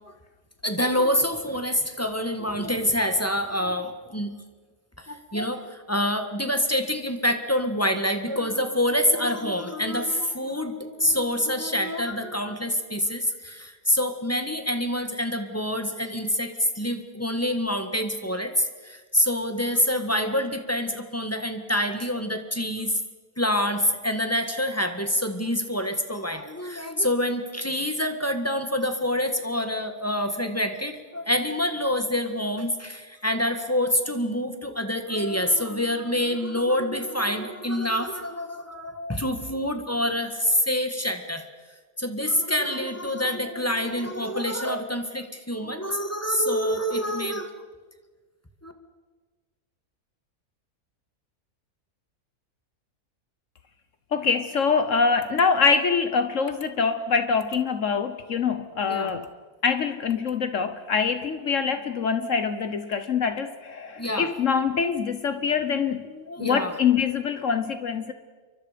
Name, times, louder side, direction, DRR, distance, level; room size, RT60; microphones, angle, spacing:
voice 1, 0.6-4.3 5.0-22.9 23.4-41.4 42.0-47.5 48.6-48.7 58.9-59.1 64.0-64.3 66.1-66.8, left 1 dB, 10° left, 7 dB, 1.5 m, -26 dB
voice 2, 54.1-59.3 59.6-66.1 66.4-68.1, left 5 dB, 60° left, 10 dB, 1.3 m, -24 dB
28.5 x 23.5 x 5.1 m, 1.4 s
omnidirectional pair, 1.6 m